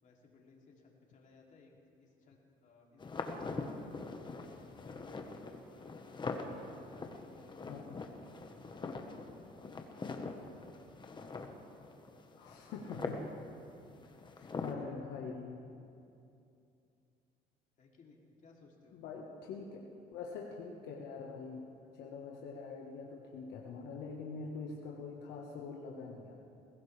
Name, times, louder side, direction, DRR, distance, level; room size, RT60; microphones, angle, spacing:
voice 1, 0.0-6.3 6.8-11.0 17.8-19.0, left 3 dB, 50° left, -1 dB, 2.9 m, -63 dB
sound 1, 3.0-14.7, left 3 dB, 25° left, 1.2 m, -43 dB
voice 2, 12.4-13.2 14.3-15.7 18.9-19.8 20.1-21.6 21.9-26.3, left 4 dB, 85° left, -2 dB, 1.4 m, -44 dB
21.0 x 16.5 x 3.4 m, 2.6 s
cardioid pair, 110°, 17 cm